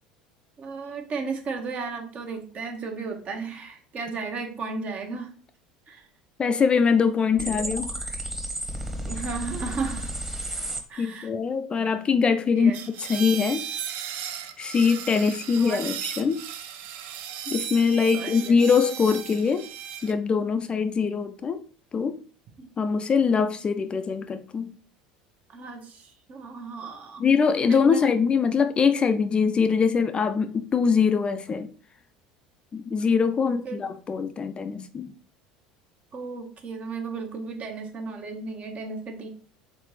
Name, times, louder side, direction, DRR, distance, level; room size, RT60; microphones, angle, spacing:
voice 1, 0.6-5.3 5.9-6.1 9.0-10.1 10.9-11.3 12.5-12.8 15.6-15.8 18.1-18.5 22.6-22.7 25.5-27.2 27.7-28.0 33.4-33.8 36.1-39.3, right 4 dB, 40° right, 1.1 m, -34 dB
voice 2, 6.4-7.9 11.0-13.6 14.6-16.4 17.5-19.7 20.0-21.6 21.9-22.2 22.8-24.7 27.2-31.7 32.7-35.1, left 5 dB, 30° left, 0.4 m, -23 dB
sound 1, 7.4-10.8, right 1 dB, 10° right, 1.2 m, -32 dB
sound 2, 12.7-20.1, right 9 dB, 60° right, 0.5 m, -36 dB
4.0 x 3.8 x 3.2 m
hypercardioid pair, 70°, 4 cm